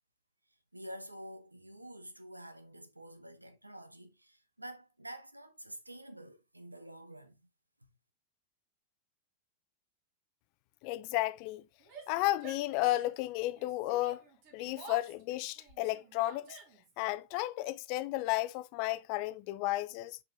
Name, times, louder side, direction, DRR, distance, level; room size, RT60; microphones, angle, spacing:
voice 1, 0.7-7.4, right 1 dB, 85° right, 0.9 m, -48 dB
voice 2, 10.8-11.6 12.1-14.2 14.5-16.6 17.0-20.2, left 17 dB, 45° left, 0.5 m, -33 dB
Yell, 11.8-13.3 13.5-17.0, right 5 dB, 45° right, 2.1 m, -52 dB
7.2 x 5.2 x 2.6 m
figure-of-eight pair, 90°, 0 cm